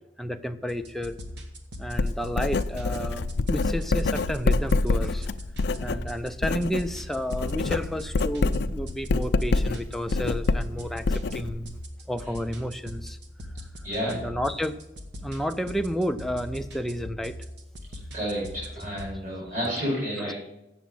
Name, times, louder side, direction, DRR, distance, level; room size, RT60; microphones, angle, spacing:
voice 1, 0.2-1.2 1.8-5.3 5.8-11.8 12.1-13.2 14.0-14.8 15.2-17.4 20.2-20.3, equal, ahead, 7 dB, 0.5 m, -31 dB
sound 1, 0.7-19.1, equal, 75° right, 1.3 m, -41 dB
Writing, 1.9-6.9 7.2-11.8, left 3 dB, 65° left, 0.4 m, -26 dB
voice 2, 13.8-14.3 18.1-20.3, equal, 50° right, -7 dB, 3.8 m, -30 dB
8.2 x 7.0 x 7.6 m, 0.92 s
head